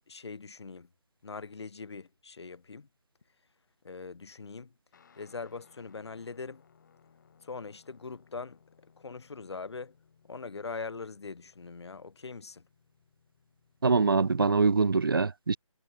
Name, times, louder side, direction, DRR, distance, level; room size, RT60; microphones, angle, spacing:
voice 1, 0.1-0.9 1.2-2.9 3.8-4.7 5.2-6.6 7.4-8.6 9.0-9.9 10.3-12.6, left 4 dB, 50° left, 0.9 m, -42 dB
Guitar, 4.9-14.7, left 6 dB, 35° left, 4.2 m, -64 dB
voice 2, 13.8-15.6, right 4 dB, 40° right, 0.5 m, -24 dB
figure-of-eight pair, 155°, 17 cm